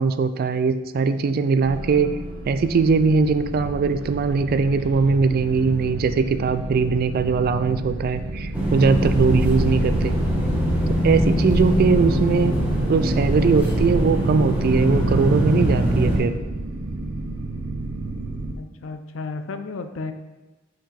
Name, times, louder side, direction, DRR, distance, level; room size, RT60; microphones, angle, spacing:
voice 1, 0.0-2.1 2.5-10.1 10.9-12.6 12.9-16.4, right 4 dB, 45° right, 11 dB, 0.3 m, -21 dB
sound 1, 1.6-18.5, right 2 dB, 65° right, 0.7 m, -32 dB
sound 2, 8.5-16.2, right 1 dB, 10° right, 1.1 m, -22 dB
voice 2, 18.6-20.1, left 3 dB, 70° left, 9 dB, 0.5 m, -33 dB
5.6 x 5.4 x 3.4 m, 1.1 s
head